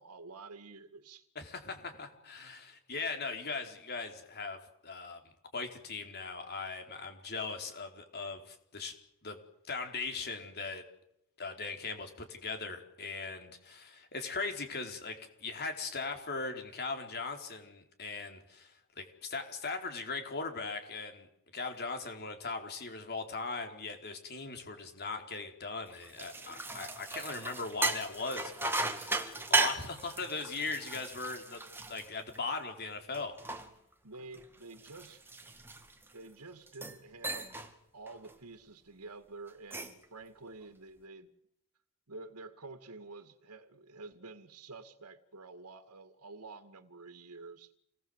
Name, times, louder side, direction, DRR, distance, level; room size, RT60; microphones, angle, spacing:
voice 1, 0.0-1.3 34.0-35.2 36.1-37.7 37.9-41.3 42.1-47.7, right 3 dB, 85° right, 7 dB, 2.1 m, -49 dB
voice 2, 1.3-5.2 5.5-8.9 9.2-9.4 9.6-10.8 11.4-21.3 21.5-31.6 31.9-33.4, left 4 dB, 50° left, 5 dB, 4.4 m, -39 dB
sound 1, 25.9-32.7 33.1-36.2 36.7-37.0 37.2-37.7 38.1-38.3 39.5-40.0, right 3 dB, 10° right, 2.4 m, -36 dB
28.5 x 19.5 x 8.1 m, 0.76 s
head